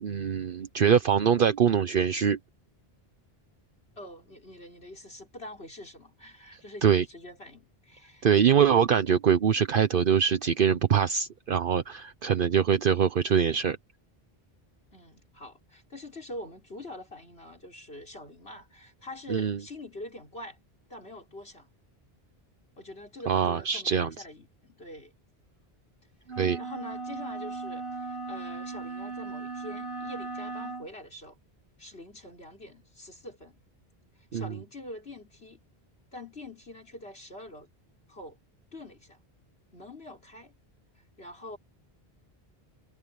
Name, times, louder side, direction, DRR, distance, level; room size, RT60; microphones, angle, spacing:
voice 1, 0.0-2.4 6.5-7.0 8.2-13.8 19.3-19.6 23.3-24.1 26.4-26.6 34.3-34.6, right 7 dB, 60° right, 1.0 m, -23 dB
voice 2, 4.0-8.3 14.9-20.6 20.9-21.7 22.8-25.1 26.6-31.4 31.8-33.6 34.2-35.6 36.1-37.7 38.1-38.4 38.7-39.2 39.7-40.5 41.2-41.6, left 1 dB, 80° left, 5.5 m, -44 dB
sound 1, 26.3-30.9, right 3 dB, 75° right, 5.8 m, -37 dB
omnidirectional pair, 1.0 m